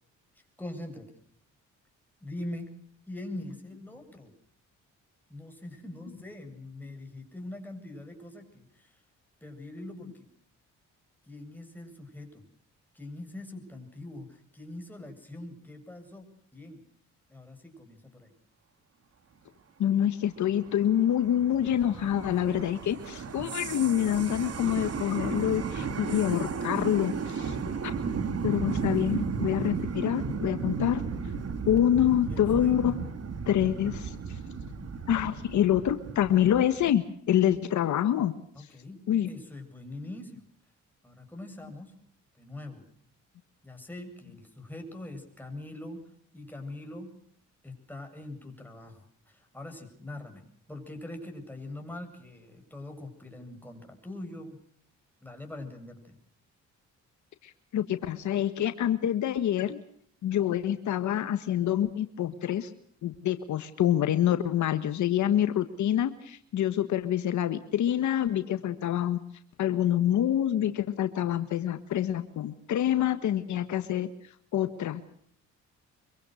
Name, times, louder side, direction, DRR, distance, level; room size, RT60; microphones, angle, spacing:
voice 1, 0.6-1.1 2.2-2.7 3.1-4.3 5.3-9.0 9.4-10.3 11.2-12.5 12.9-16.3 16.5-16.8 17.3-18.3 31.9-32.8 38.5-40.4 41.0-41.9 42.4-42.9 43.6-46.0 46.3-47.1 47.6-54.6 55.2-56.2, left 1 dB, 5° left, 3 dB, 7.9 m, -43 dB
voice 2, 19.8-27.6 27.8-28.0 28.4-31.0 31.7-33.1 33.5-34.4 35.1-38.3 38.6-38.7 39.1-39.3 57.4-59.8 60.2-62.7 63.0-69.2 69.6-74.1 74.5-75.1, left 11 dB, 70° left, 10 dB, 1.5 m, -26 dB
sound 1, 20.4-36.9, right 5 dB, 55° right, 3.2 m, -34 dB
25.5 x 24.0 x 6.5 m, 0.63 s
cardioid pair, 90°, 30 cm